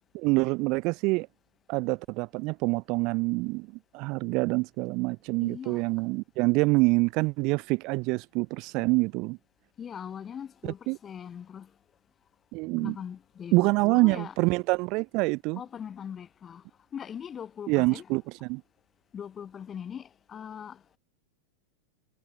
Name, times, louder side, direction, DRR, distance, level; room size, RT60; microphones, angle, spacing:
voice 1, 0.1-1.3 1.7-3.7 3.9-9.4 10.6-11.0 12.5-13.0 13.5-15.6 17.7-18.6, right 26 dB, 40° right, 0.4 m, -26 dB
voice 2, 5.4-5.9 8.8-8.9 9.8-11.7 12.8-14.3 15.6-16.6 16.9-18.1 19.1-20.8, left 8 dB, 25° left, 6.1 m, -41 dB
figure-of-eight pair, 90°, 0 cm